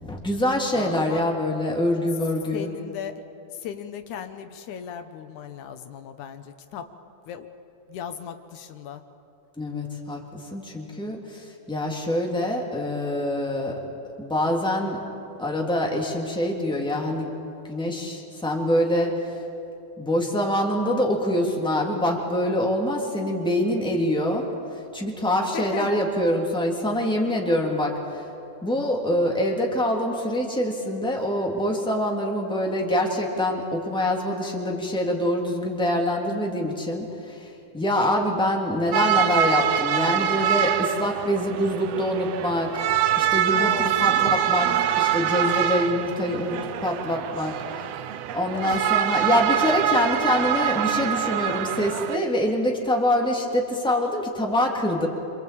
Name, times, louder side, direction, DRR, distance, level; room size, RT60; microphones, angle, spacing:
voice 1, 0.0-2.7 9.6-13.8 14.2-15.0 15.4-17.3 17.7-19.1 20.0-24.5 24.9-28.2 28.6-37.5 37.7-42.9 43.2-43.7 44.0-47.9 48.3-55.1, left 1 dB, ahead, -1 dB, 2.7 m, -25 dB
voice 2, 0.7-1.3 2.5-3.2 3.6-6.8 7.3-7.5 7.9-9.0 25.5-25.9 43.6-43.9 48.7-48.8, left 8 dB, 80° left, 8 dB, 2.5 m, -36 dB
sound 1, 38.9-52.2, right 10 dB, 70° right, 1.7 m, -24 dB
26.5 x 25.0 x 8.6 m, 2.7 s
omnidirectional pair, 3.4 m